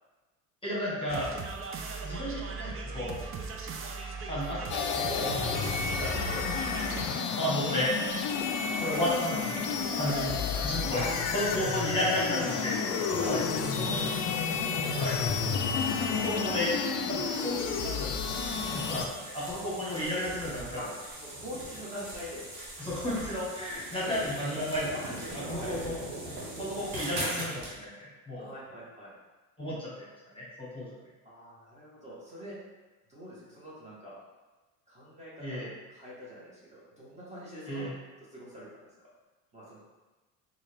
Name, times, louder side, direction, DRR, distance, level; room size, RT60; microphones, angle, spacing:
voice 1, 0.6-1.3 2.0-3.2 4.3-4.6 4.9-6.5 7.4-7.9 8.8-9.7 9.9-11.0 11.3-13.6 15.0-15.2 16.1-16.7 17.0-18.4 18.7-20.7 22.8-24.9 25.3-25.9 26.6-27.9 28.3-28.5 29.6-29.9 30.3-30.9 35.4-35.7 37.7-37.9, left 1 dB, 15° left, -7 dB, 1.4 m, -33 dB
sound 1, 1.1-7.1, right 4 dB, 35° right, 0.5 m, -38 dB
sound 2, 4.7-19.1, left 5 dB, 50° left, 0.5 m, -31 dB
voice 2, 6.8-7.5 10.9-11.1 13.2-14.2 14.7-15.4 15.7-15.9 19.5-19.6 20.8-20.9 21.2-22.5 24.9-26.0 28.3-29.1 31.2-32.6 33.1-34.2 34.9-37.9 38.3-38.7 39.0-39.1 39.5-39.8, equal, 15° right, -8 dB, 1.4 m, -44 dB
sound 3, 17.3-27.7, right 1 dB, 75° right, 1.3 m, -41 dB
3.9 x 2.5 x 3.4 m, 1.2 s
supercardioid pair, 85°, 39 cm